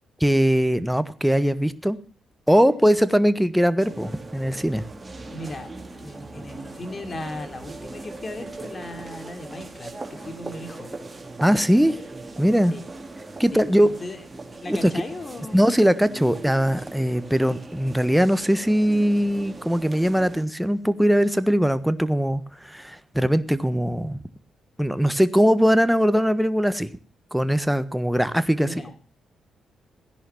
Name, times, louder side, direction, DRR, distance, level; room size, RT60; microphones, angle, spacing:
voice 1, 0.2-2.0 2.5-4.8 11.4-11.9 12.4-12.7 13.4-13.9 14.7-14.9 15.5-24.2 24.8-26.9 27.3-29.0, equal, ahead, 13 dB, 1.4 m, -21 dB
sound 1, 3.8-20.4, right 2 dB, 20° right, 4.4 m, -40 dB
voice 2, 5.3-5.7 6.0-10.9 12.7-12.9 13.5-13.6 14.0-14.2 14.6-15.7 28.6-28.9, left 2 dB, 35° left, 7 dB, 3.6 m, -37 dB
16.0 x 11.0 x 7.1 m, 0.40 s
hypercardioid pair, 50°, 0 cm